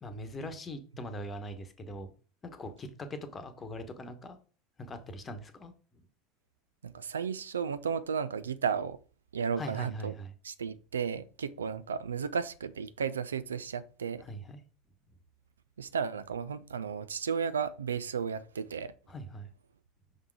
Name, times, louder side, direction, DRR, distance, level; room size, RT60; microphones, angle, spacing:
voice 1, 0.0-2.1 2.5-4.4 4.8-6.0 9.6-10.3 14.2-14.6 19.1-19.5, equal, 25° left, 1.1 m, -41 dB
voice 2, 6.8-9.0 9.3-10.1 10.4-14.2 15.8-18.9, right 6 dB, 80° right, 0.3 m, -34 dB
5.5 x 3.7 x 4.7 m
figure-of-eight pair, 75°, 0 cm